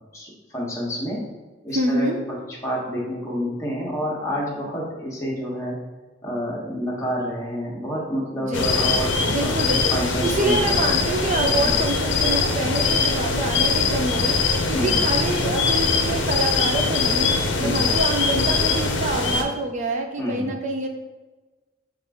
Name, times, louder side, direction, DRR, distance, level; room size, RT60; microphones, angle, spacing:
voice 1, 0.1-1.2 1.6-2.4 2.6-5.7 6.2-9.1 9.4-9.6 9.9-10.8 11.6-11.8 14.7-15.0 17.6-17.9 20.2-20.5, equal, 15° left, -4 dB, 1.2 m, -28 dB
voice 2, 1.7-2.2 8.4-9.0 9.3-17.3 17.6-20.9, right 2 dB, 40° right, 4 dB, 0.4 m, -26 dB
sound 1, 8.5-19.4, left 4 dB, 80° left, 0.6 m, -22 dB
5.8 x 2.5 x 3.5 m, 1.2 s
head